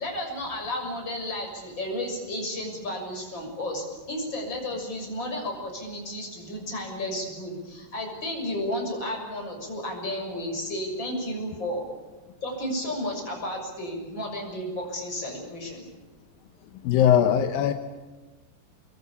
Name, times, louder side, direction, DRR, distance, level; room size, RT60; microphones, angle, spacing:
voice 1, 0.0-11.9 12.4-15.8, left 1 dB, 30° left, 1 dB, 7.1 m, -32 dB
voice 2, 16.8-17.7, left 9 dB, 85° left, 7 dB, 2.8 m, -20 dB
27.0 x 21.5 x 8.5 m, 1.2 s
omnidirectional pair, 4.1 m